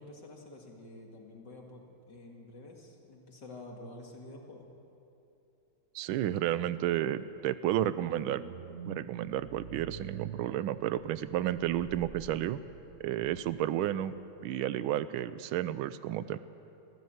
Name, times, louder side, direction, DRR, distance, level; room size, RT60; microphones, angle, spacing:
voice 1, 0.0-4.7, left 2 dB, 55° left, 1 dB, 2.8 m, -49 dB
voice 2, 5.9-8.4 8.9-12.6 13.0-14.1 14.4-16.4, right 12 dB, 75° right, 15 dB, 1.4 m, -32 dB
sound 1, 8.0-13.7 14.0-14.1, right 8 dB, 60° right, 0.9 m, -46 dB
22.5 x 15.0 x 7.9 m, 2.8 s
omnidirectional pair, 2.4 m